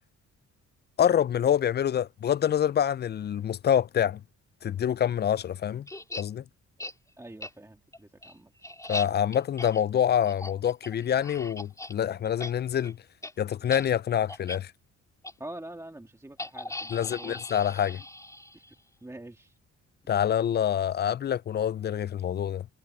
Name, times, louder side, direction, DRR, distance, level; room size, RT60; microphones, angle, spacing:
voice 1, 1.0-4.2 4.6-5.9 6.2-6.4 8.9-13.0 13.4-14.7 16.9-18.0 20.1-22.7, left 9 dB, 35° left, 0.4 m, -26 dB
sound 1, 5.9-6.2 6.8-6.9 7.4-7.5 7.9-11.9 12.2-12.5 12.8-12.9 13.2-13.3 13.7-13.8 14.3-14.6 15.2-15.3 16.4-18.7, left 1 dB, 10° left, 3.2 m, -39 dB
voice 2, 7.2-8.5 15.4-17.4 17.9-18.1 18.5-18.8 19.0-19.6, right 1 dB, 10° right, 1.8 m, -45 dB
cardioid pair, 90°, 30 cm